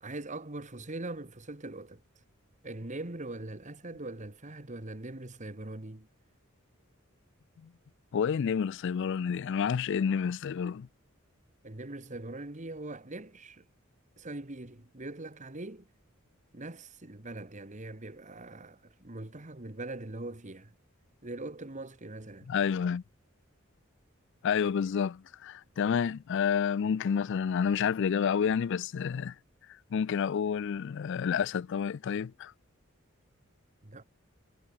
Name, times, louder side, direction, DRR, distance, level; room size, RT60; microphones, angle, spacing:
voice 1, 0.0-2.0 2.6-6.1 11.6-13.6 14.2-15.9 16.5-20.7 21.2-22.5 33.8-34.0, right 2 dB, 35° right, 1.7 m, -42 dB
voice 2, 8.1-10.9 22.5-23.0 24.4-29.3 29.9-32.5, left 7 dB, 60° left, 0.4 m, -29 dB
head